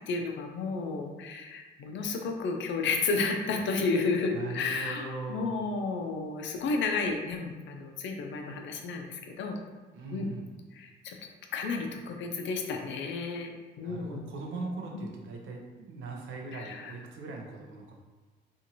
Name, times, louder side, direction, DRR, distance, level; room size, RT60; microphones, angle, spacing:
voice 1, 0.1-9.6 10.1-10.3 10.7-11.1 11.5-14.2 14.9-15.0 16.5-16.9, left 4 dB, 70° left, 3 dB, 0.5 m, -32 dB
voice 2, 4.3-5.5 9.9-10.5 13.8-18.0, right 3 dB, 80° right, 0 dB, 0.6 m, -40 dB
2.7 x 2.5 x 2.8 m, 1.3 s
cardioid pair, 90°, 20 cm